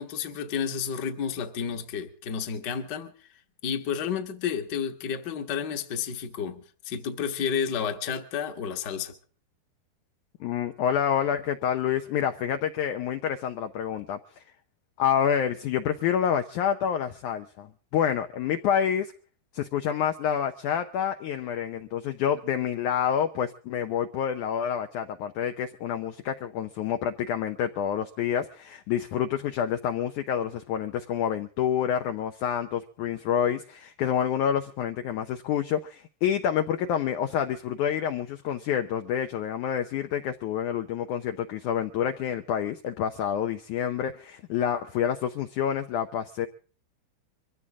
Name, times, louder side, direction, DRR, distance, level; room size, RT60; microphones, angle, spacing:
voice 1, 0.0-3.1 3.6-9.1, left 7 dB, 50° left, 1.3 m, -31 dB
voice 2, 10.4-14.4 15.0-19.1 19.5-46.5, left 9 dB, 85° left, 1.7 m, -28 dB
23.5 x 15.5 x 3.6 m
omnidirectional pair, 4.7 m